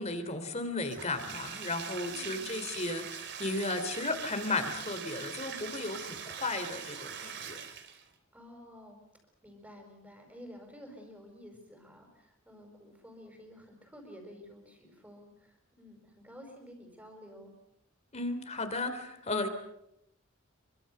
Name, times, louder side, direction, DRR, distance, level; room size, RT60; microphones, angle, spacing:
voice 1, 0.0-7.6 18.1-19.5, left 2 dB, 35° left, 8 dB, 3.2 m, -35 dB
Bathtub (filling or washing), 0.8-8.1, right 7 dB, 55° right, 3.0 m, -42 dB
voice 2, 2.1-2.6 8.3-9.0 9.4-17.5, equal, 10° right, 1 dB, 5.2 m, -51 dB
26.0 x 24.0 x 6.7 m, 0.81 s
head